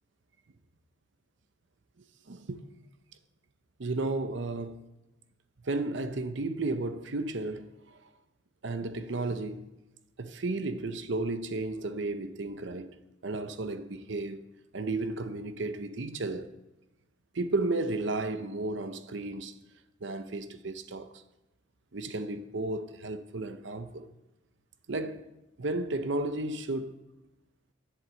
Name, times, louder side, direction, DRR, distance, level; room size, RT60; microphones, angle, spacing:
voice 1, 2.3-2.6 3.8-4.8 5.6-8.1 8.6-9.7 10.2-13.0 13.2-14.4 14.7-16.5 17.3-19.5 20.0-21.2 21.9-24.1 24.9-25.2 25.6-27.0, right 2 dB, 65° right, 0.7 m, -33 dB
11.0 x 11.0 x 7.6 m
head